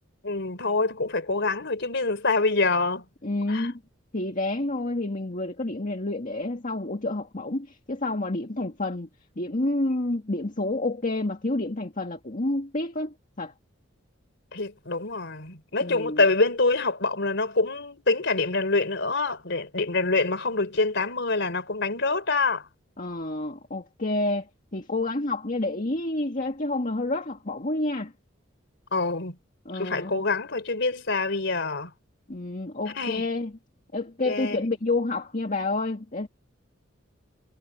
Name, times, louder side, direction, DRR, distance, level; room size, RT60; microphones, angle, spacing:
voice 1, 0.2-3.0 3.5-3.7 14.5-22.6 28.9-29.4 29.7-31.9 33.0-33.3 34.2-34.6, left 3 dB, 65° left, 4.1 m, -25 dB
voice 2, 3.2-3.8 4.1-9.1 9.4-13.5 15.8-16.2 23.0-24.5 24.7-28.1 29.7-30.2 32.3-33.6 33.9-36.3, left 2 dB, 45° left, 1.9 m, -29 dB
head